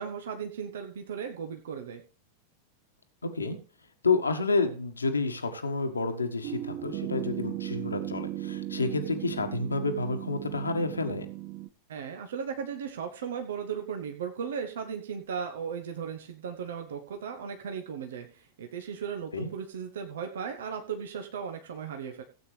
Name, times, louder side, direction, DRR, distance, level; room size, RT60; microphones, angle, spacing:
voice 1, 0.0-2.0 11.9-22.2, right 7 dB, 60° right, 5 dB, 1.1 m, -36 dB
voice 2, 3.2-3.6 4.0-11.3 19.3-19.5, left 3 dB, 75° left, 6 dB, 1.5 m, -29 dB
sound 1, 6.4-11.7, right 14 dB, 40° right, 0.6 m, -37 dB
17.0 x 8.5 x 3.3 m, 0.39 s
figure-of-eight pair, 90°, 0 cm